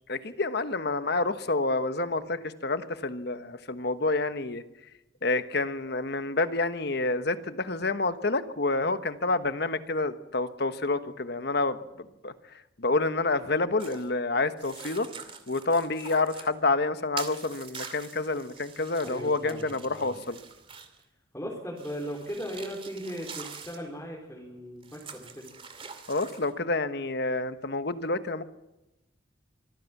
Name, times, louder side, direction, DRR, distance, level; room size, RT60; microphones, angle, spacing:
voice 1, 0.1-4.6 5.2-11.8 12.2-12.3 12.8-15.1 15.5-20.4 26.1-28.4, left 3 dB, 55° left, 10 dB, 1.3 m, -28 dB
sound 1, 13.8-14.1 14.6-16.5 17.2-21.0 21.8-23.8 24.8-26.5, right 5 dB, 30° right, 2.4 m, -45 dB
voice 2, 19.0-20.2 21.3-25.5, equal, 15° left, -3 dB, 3.9 m, -38 dB
25.0 x 16.5 x 7.3 m, 0.94 s
head